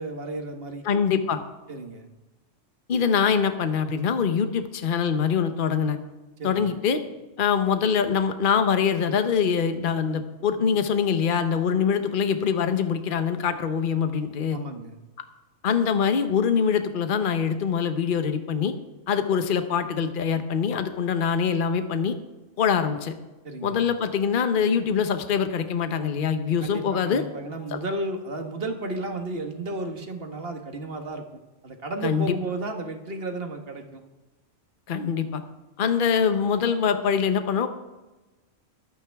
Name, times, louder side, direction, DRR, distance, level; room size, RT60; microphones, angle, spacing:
voice 1, 0.0-0.8 1.7-2.1 6.4-6.7 14.5-15.0 23.4-23.8 26.6-31.2 31.6-34.0, right 2 dB, 50° right, 5 dB, 1.7 m, -33 dB
voice 2, 0.8-1.4 2.9-6.0 6.4-7.0 7.4-14.6 15.6-18.7 19.1-22.2 22.6-23.2 23.6-27.2 27.7-27.8 32.0-32.3 34.9-35.4 35.8-37.7, left 7 dB, 45° left, 8 dB, 1.0 m, -24 dB
22.5 x 9.0 x 3.5 m, 1.1 s
omnidirectional pair, 1.3 m